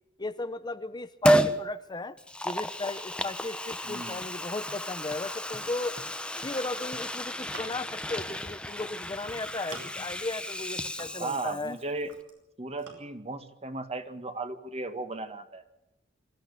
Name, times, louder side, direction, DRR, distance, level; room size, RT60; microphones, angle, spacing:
voice 1, 0.2-2.2 2.4-6.0 6.4-11.8, left 2 dB, 20° left, 11 dB, 0.7 m, -36 dB
Liquid, 1.2-1.6 2.2-11.8 12.1-12.2, equal, 5° left, 1.0 m, -31 dB
voice 2, 3.8-4.2 11.2-12.1 12.6-15.6, right 2 dB, 35° right, 8 dB, 1.9 m, -36 dB
sound 1, 7.3-8.0 9.0-9.2 9.4-10.1 10.6-11.5 11.8-12.4 12.8-13.0, right 3 dB, 80° right, 6.1 m, -47 dB
24.5 x 14.5 x 8.4 m, 0.90 s
head